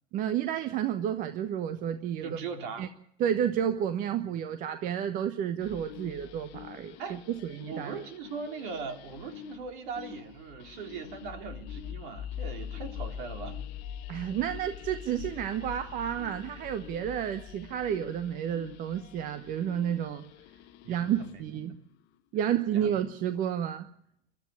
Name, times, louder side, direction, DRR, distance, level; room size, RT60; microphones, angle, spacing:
voice 1, 0.1-2.4 2.8-2.9 3.2-7.9 14.1-20.2 20.9-21.8 22.3-23.8, right 9 dB, 25° right, 10 dB, 1.0 m, -31 dB
voice 2, 2.2-2.9 7.0-7.2 7.7-13.6 20.8-21.6 22.7-22.9, right 5 dB, 45° right, 5 dB, 3.6 m, -40 dB
sound 1, 5.6-21.5, left 10 dB, 30° left, 1.2 m, -44 dB
22.5 x 13.0 x 9.6 m, 0.72 s
figure-of-eight pair, 110°, 34 cm